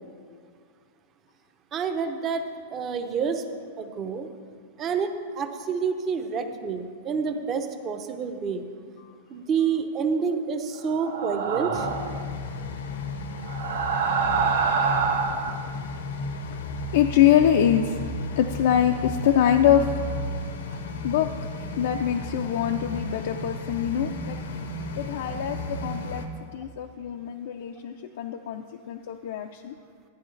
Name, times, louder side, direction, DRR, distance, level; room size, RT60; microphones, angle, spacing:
voice 1, 1.7-2.4 2.7-3.4 3.8-4.3 4.8-8.6 9.3-11.9, right 6 dB, 25° right, 7 dB, 0.6 m, -28 dB
sound 1, 11.0-12.2 13.4-15.6, right 5 dB, 85° right, 0.9 m, -26 dB
sound 2, 11.7-26.3, left 2 dB, 90° left, 0.9 m, -34 dB
voice 2, 16.9-18.0 18.4-19.9 20.2-20.3 21.0-21.3 21.8-24.4 25.0-26.3 26.5-29.7, left 10 dB, 65° left, 4 dB, 0.4 m, -24 dB
11.0 x 9.9 x 3.2 m, 2.1 s
supercardioid pair, 155°, 0 cm